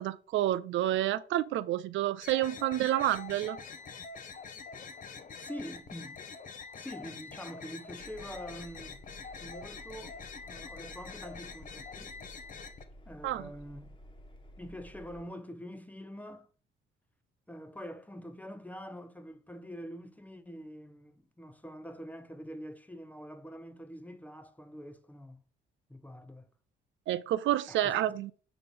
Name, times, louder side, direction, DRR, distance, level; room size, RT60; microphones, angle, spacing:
voice 1, 0.0-3.6 13.2-13.5 27.1-28.3, right 13 dB, 75° right, 0.4 m, -29 dB
sound 1, 2.2-12.8, left 5 dB, 40° left, 0.7 m, -45 dB
voice 2, 5.4-6.2 6.7-9.1 9.4-12.2 13.1-14.0 14.6-16.5 17.5-25.4 25.9-26.5 27.7-28.0, equal, 10° left, 0.7 m, -45 dB
Engine, 8.0-15.3, equal, 25° left, 1.3 m, -53 dB
7.0 x 2.5 x 5.4 m
cardioid pair, 90°, 20 cm